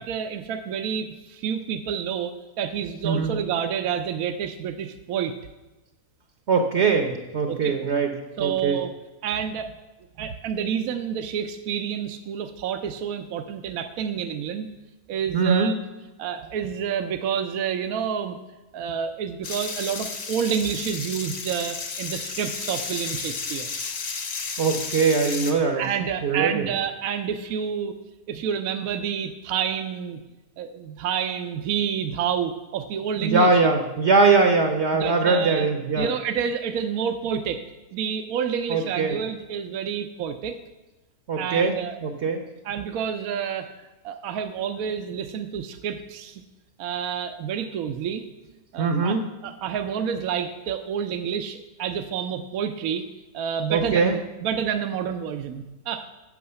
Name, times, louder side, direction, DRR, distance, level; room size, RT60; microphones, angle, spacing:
voice 1, 0.0-5.3 7.5-7.8 8.4-8.9 9.2-9.7 10.2-14.7 15.1-15.7 16.2-18.4 18.7-23.7 25.8-27.9 28.3-30.2 30.6-33.7 34.9-35.7 35.9-37.6 37.9-40.6 41.4-41.9 42.6-46.4 46.8-48.2 48.7-49.2 49.4-53.1 53.3-56.1, right 8 dB, 75° right, 7 dB, 1.1 m, -29 dB
voice 2, 6.5-8.1 8.4-8.8 15.3-15.7 24.6-25.8 26.2-26.7 33.2-36.1 38.7-39.2 41.3-41.8 42.0-42.4 48.8-49.2 53.7-54.2, right 4 dB, 55° right, 4 dB, 1.0 m, -21 dB
sound 1, 19.4-25.5, left 5 dB, 60° left, 1.4 m, -32 dB
8.7 x 7.3 x 6.8 m, 1.1 s
omnidirectional pair, 1.6 m